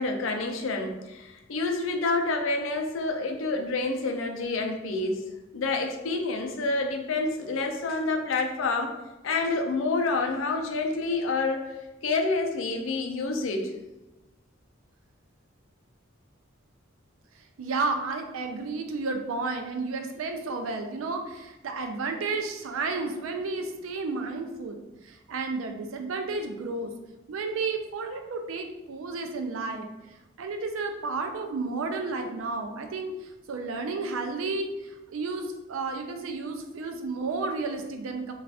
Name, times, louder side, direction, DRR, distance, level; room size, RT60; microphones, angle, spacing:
voice 1, 0.0-5.2 5.5-8.9 9.2-11.7 12.0-13.7, left 3 dB, 75° left, 3 dB, 0.4 m, -28 dB
voice 2, 17.6-26.9 27.3-29.9 30.4-38.3, right 3 dB, 85° right, 5 dB, 0.4 m, -32 dB
2.4 x 2.4 x 3.3 m, 1.0 s
head